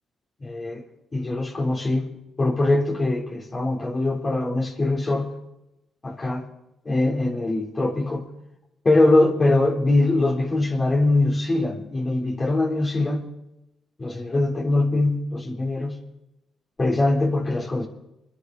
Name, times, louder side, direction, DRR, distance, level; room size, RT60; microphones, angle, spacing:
voice 1, 0.4-0.8 1.1-2.1 2.4-5.3 6.0-6.5 6.9-8.3 8.8-13.3 14.0-16.0 16.8-17.9, left 2 dB, 35° left, -2 dB, 3.8 m, -22 dB
24.0 x 11.0 x 4.2 m, 0.89 s
supercardioid pair, 50°, 0 cm